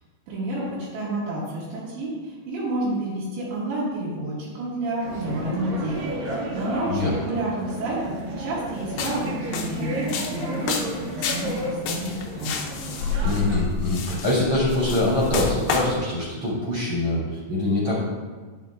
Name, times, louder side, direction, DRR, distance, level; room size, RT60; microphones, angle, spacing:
voice 1, 0.3-12.5, right 1 dB, 75° right, -10 dB, 3.8 m, -30 dB
sound 1, 5.0-13.6, right 1 dB, 55° right, 3.0 m, -32 dB
voice 2, 6.9-7.2 13.2-17.9, left 1 dB, 35° right, -6 dB, 3.3 m, -24 dB
sound 2, 8.9-16.0, left 5 dB, 90° left, 2.1 m, -30 dB
11.5 x 9.1 x 2.4 m, 1.4 s
omnidirectional pair, 5.2 m